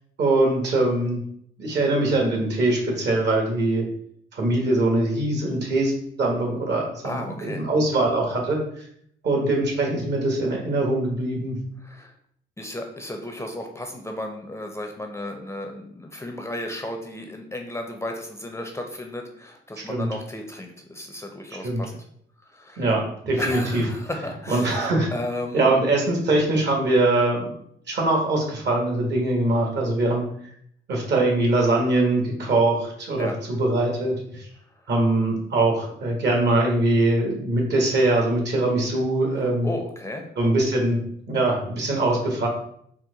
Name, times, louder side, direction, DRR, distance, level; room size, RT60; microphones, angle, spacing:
voice 1, 0.2-1.2 1.6-3.8 4.3-5.9 6.2-8.6 9.2-11.6 19.9-20.1 21.6-21.8 22.8-23.8 24.5-25.1 25.5-27.5 27.9-30.2 30.9-34.5 34.9-39.7 40.4-41.0 41.3-42.5, right 2 dB, 60° right, 0 dB, 1.4 m, -22 dB
voice 2, 7.0-7.7 11.8-12.1 12.6-22.0 22.5-22.8 23.3-25.8 33.2-33.4 34.8-34.9 39.3-40.3, left 1 dB, 15° left, 3 dB, 0.5 m, -34 dB
4.3 x 2.1 x 3.8 m, 0.68 s
cardioid pair, 90°, 20 cm